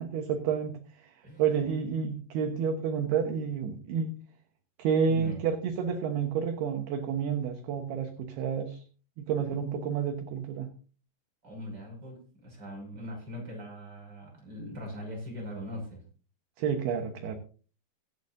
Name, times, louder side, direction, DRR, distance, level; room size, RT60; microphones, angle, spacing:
voice 1, 0.0-4.2 4.8-8.8 9.2-10.7 16.6-17.4, right 7 dB, 70° right, 5 dB, 2.9 m, -30 dB
voice 2, 1.2-1.6 5.0-5.4 11.4-16.0, equal, 25° right, 0 dB, 6.2 m, -41 dB
24.0 x 8.7 x 2.6 m, 0.39 s
omnidirectional pair, 5.1 m